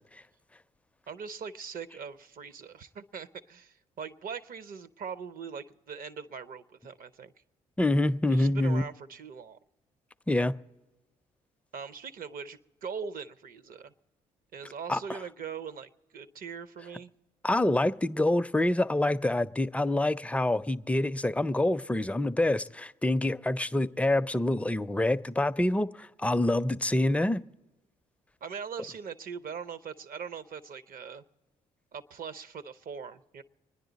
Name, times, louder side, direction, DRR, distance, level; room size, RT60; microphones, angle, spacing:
voice 1, 1.1-7.3 8.3-9.6 11.7-13.9 14.5-17.1 28.4-31.2 31.9-33.4, right 6 dB, 55° right, 0.8 m, -41 dB
voice 2, 7.8-8.8 10.3-10.5 14.9-15.0 17.4-27.4, left 1 dB, 5° left, 0.4 m, -26 dB
25.5 x 10.5 x 4.0 m
hypercardioid pair, 50°, 18 cm